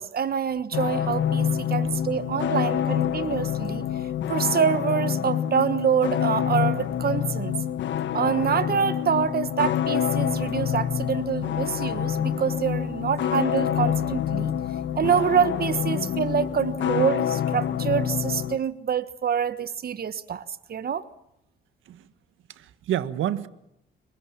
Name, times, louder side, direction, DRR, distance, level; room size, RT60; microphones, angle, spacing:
voice 1, 0.0-3.8 4.3-7.5 8.1-14.5 15.0-20.4 20.7-21.0, right 7 dB, 50° right, 14 dB, 1.3 m, -26 dB
sound 1, 0.7-18.6, left 9 dB, 70° left, 1.4 m, -27 dB
voice 2, 22.5-23.5, right 11 dB, 80° right, 13 dB, 1.5 m, -29 dB
27.0 x 23.0 x 7.4 m, 0.85 s
cardioid pair, 90°, 20 cm